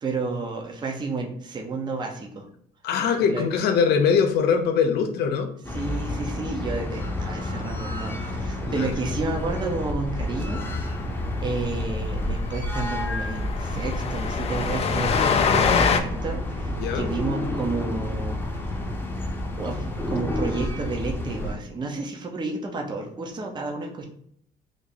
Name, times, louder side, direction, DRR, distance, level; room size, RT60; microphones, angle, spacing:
voice 1, 0.0-2.5 3.2-3.5 5.7-10.9 11.4-18.7 19.6-24.1, right 3 dB, 25° right, 1 dB, 0.6 m, -31 dB
voice 2, 2.8-5.5 8.7-8.9 16.8-17.1, left 6 dB, 75° left, 6 dB, 0.7 m, -22 dB
sound 1, 5.6-21.5, left 1 dB, 15° left, 0.8 m, -30 dB
Train, 11.4-11.5 11.8-11.9 12.2-12.3 12.6-16.0, left 6 dB, 35° left, 0.4 m, -24 dB
3.3 x 2.6 x 4.0 m, 0.66 s
cardioid pair, 110°, 17 cm